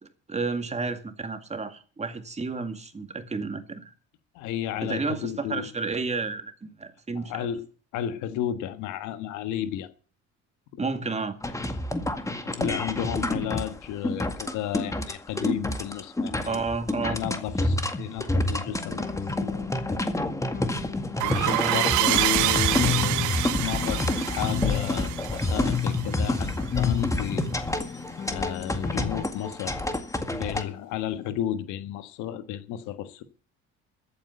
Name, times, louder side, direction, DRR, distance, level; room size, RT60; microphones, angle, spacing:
voice 1, 0.0-3.9 4.8-7.5 10.8-11.4 16.5-17.2 21.5-21.8, right 4 dB, 20° right, 2.2 m, -31 dB
voice 2, 4.3-5.7 7.1-7.7 7.9-9.9 10.7-10.8 12.4-16.6 17.0-19.1 19.4-20.1 21.2-23.3 23.6-27.4 28.3-29.7 30.3-33.2, left 11 dB, 80° left, 1.5 m, -33 dB
sound 1, 11.4-30.6, left 1 dB, 10° left, 1.9 m, -29 dB
sound 2, 18.8-29.2, left 9 dB, 30° left, 0.7 m, -34 dB
sound 3, 21.2-26.5, right 17 dB, 80° right, 1.0 m, -27 dB
14.0 x 8.7 x 8.1 m
supercardioid pair, 90°, 30 cm